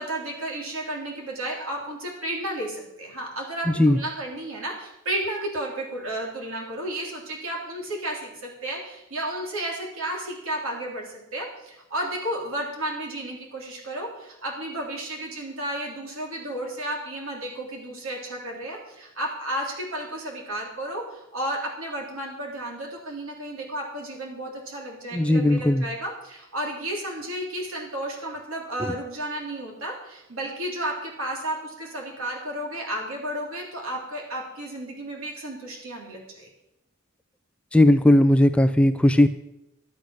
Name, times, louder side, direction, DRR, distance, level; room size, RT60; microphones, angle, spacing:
voice 1, 0.0-36.5, right 1 dB, 80° right, -1 dB, 3.3 m, -32 dB
voice 2, 3.7-4.0 25.1-25.9 28.8-28.9 37.7-39.3, left 1 dB, 5° left, 9 dB, 0.4 m, -18 dB
11.5 x 8.4 x 6.4 m, 0.89 s
head